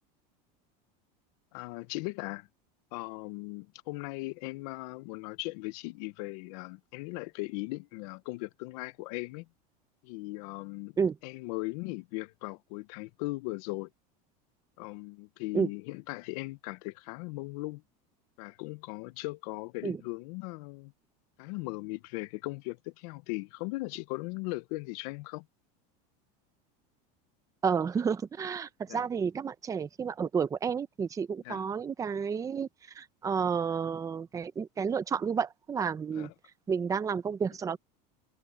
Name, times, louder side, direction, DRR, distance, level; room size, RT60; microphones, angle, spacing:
voice 1, 1.5-2.5 2.9-9.5 10.0-11.0 11.2-13.9 14.8-17.8 18.4-20.9 21.4-25.5 28.9-29.0 31.4-31.6 36.1-36.3, left 23 dB, 65° left, 0.9 m, -38 dB
voice 2, 27.6-32.7 32.9-36.3 36.7-37.8, right 6 dB, 15° right, 0.8 m, -31 dB
supercardioid pair, 150°, 21 cm